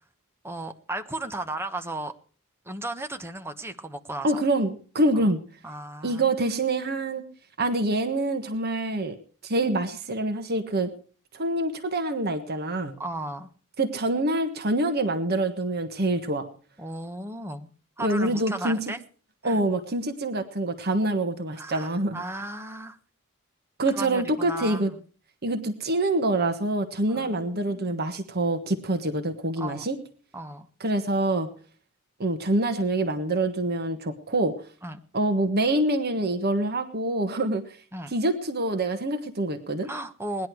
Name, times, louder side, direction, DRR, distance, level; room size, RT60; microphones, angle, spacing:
voice 1, 0.4-2.1 2.6-4.4 5.1-5.3 5.6-6.3 13.0-13.5 16.8-17.7 18.0-19.0 19.4-19.6 21.6-23.0 23.9-25.0 27.1-28.0 29.6-29.8 30.3-30.7 34.8-35.0 37.9-38.1 39.8-40.5, right 1 dB, 10° right, 7 dB, 1.1 m, -35 dB
voice 2, 4.2-5.4 6.0-7.2 7.6-9.1 9.4-10.9 11.3-13.0 13.8-16.5 18.0-18.8 19.4-22.2 23.8-24.9 25.4-30.0 30.8-31.5 32.2-34.5 35.1-37.6 38.1-39.9, right 2 dB, 50° right, 7 dB, 1.4 m, -26 dB
19.0 x 11.0 x 4.7 m, 0.41 s
head